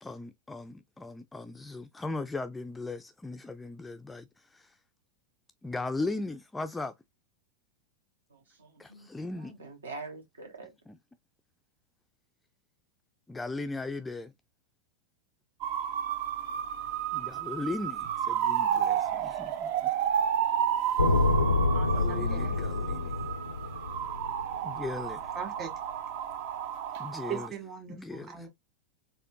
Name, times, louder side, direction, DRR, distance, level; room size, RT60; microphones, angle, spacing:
voice 1, 0.0-4.7 5.6-6.9 8.8-9.5 10.9-11.0 13.3-14.3 17.1-19.9 21.9-23.1 24.6-25.4 27.0-27.5 27.9-28.5, left 3 dB, 10° left, 0.3 m, -38 dB
voice 2, 8.3-10.8, right 3 dB, 70° right, 1.1 m, -45 dB
sound 1, 15.6-27.5, right 9 dB, 45° right, 0.5 m, -31 dB
sound 2, 21.0-25.1, left 3 dB, 80° left, 0.4 m, -28 dB
voice 3, 21.5-22.6 25.3-25.7 27.3-28.5, right 7 dB, 30° right, 1.7 m, -40 dB
4.2 x 2.6 x 2.4 m
figure-of-eight pair, 90°, 0 cm